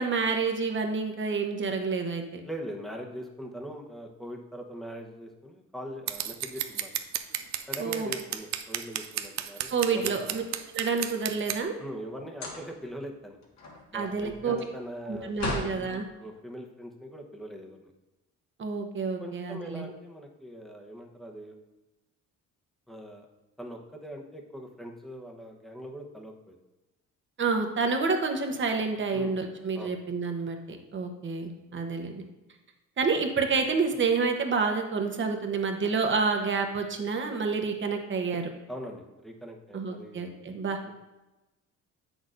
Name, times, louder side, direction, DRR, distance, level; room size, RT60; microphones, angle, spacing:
voice 1, 0.0-2.4 7.8-8.1 9.7-10.4 10.7-11.8 13.9-14.6 15.1-16.0 18.6-19.8 27.4-32.2 33.0-38.5 39.7-41.0, right 4 dB, 40° right, 4 dB, 1.0 m, -29 dB
voice 2, 2.4-6.9 7.7-10.2 11.8-13.4 13.9-15.9 16.2-17.9 19.2-21.6 22.9-23.3 23.6-26.6 29.1-29.4 29.7-29.9 30.7-30.8 33.1-33.2 38.7-40.3 40.8-41.0, equal, ahead, 1 dB, 0.9 m, -41 dB
Scissors, 6.1-11.6, right 11 dB, 65° right, 0.5 m, -33 dB
sound 1, 10.0-11.1 12.3-12.9 13.3-15.8, left 2 dB, 65° left, 1.6 m, -38 dB
7.9 x 6.3 x 2.6 m, 1.0 s
cardioid pair, 90°, 30 cm